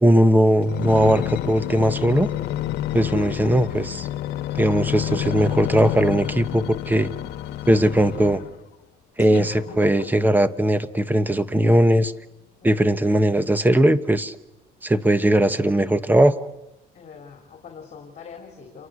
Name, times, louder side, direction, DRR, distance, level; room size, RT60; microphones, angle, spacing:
voice 1, 0.0-2.3 2.9-4.1 4.5-7.1 7.7-8.4 9.2-12.1 12.6-14.4 14.8-16.4, right 1 dB, 10° right, 12 dB, 1.1 m, -19 dB
sound 1, 0.6-8.6 9.2-10.5 11.1-11.2, left 13 dB, 75° left, 1.3 m, -29 dB
voice 2, 12.6-13.0 16.9-18.9, left 6 dB, 45° left, 2 dB, 3.6 m, -43 dB
28.5 x 23.0 x 6.5 m, 0.99 s
cardioid pair, 110°, 17 cm